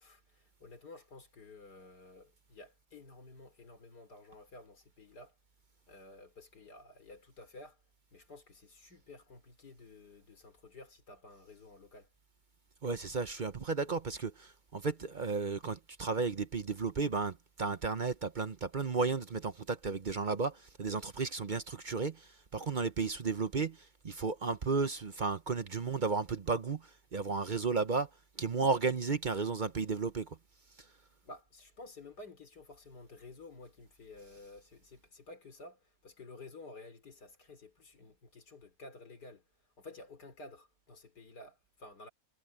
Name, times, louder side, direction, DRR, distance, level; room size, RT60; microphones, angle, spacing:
voice 1, 0.0-5.4 5.9-7.8 8.1-12.1 31.2-39.4 39.8-42.1, left 2 dB, 80° left, 4.1 m, -52 dB
voice 2, 12.8-28.1 28.4-30.4, right 4 dB, 40° right, 0.7 m, -33 dB
omnidirectional pair, 1.7 m